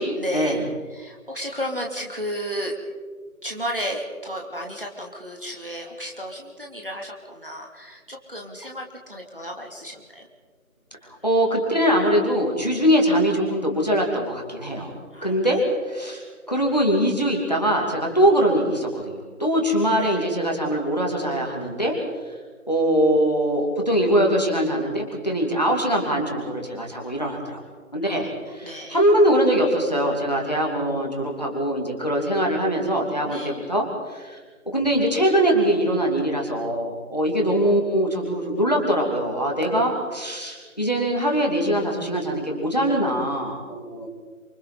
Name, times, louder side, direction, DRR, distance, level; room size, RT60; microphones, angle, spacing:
voice 1, 0.2-2.8 3.4-10.3 15.1-15.3 19.8-20.2 28.0-28.2 28.5-29.1 33.2-33.6, equal, 40° right, 0 dB, 2.7 m, -33 dB
voice 2, 11.2-14.9 15.2-16.2 16.5-22.0 22.2-22.3 22.7-27.6 27.9-28.3 28.5-34.4 34.7-44.1, equal, 30° left, -1 dB, 2.8 m, -22 dB
29.5 x 25.0 x 4.1 m, 1.5 s
figure-of-eight pair, 175°, 44 cm